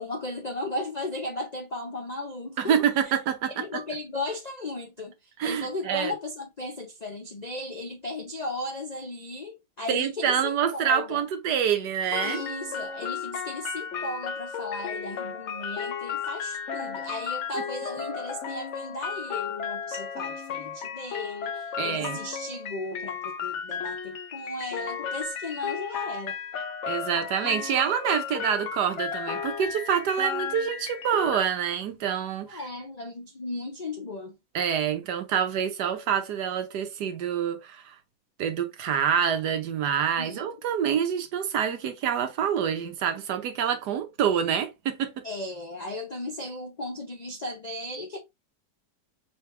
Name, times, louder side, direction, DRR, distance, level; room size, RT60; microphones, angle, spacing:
voice 1, 0.0-2.8 3.6-5.1 5.4-11.2 12.2-26.4 32.5-34.3 40.2-40.4 45.2-48.2, left 2 dB, 90° left, 0.3 m, -36 dB
voice 2, 2.6-3.8 5.4-6.1 9.9-12.4 21.8-22.2 26.9-32.6 34.5-38.0 38.4-45.3, right 8 dB, 70° right, 1.4 m, -27 dB
sound 1, 12.1-31.4, left 7 dB, 65° left, 0.7 m, -34 dB
3.9 x 3.4 x 3.2 m
omnidirectional pair, 1.8 m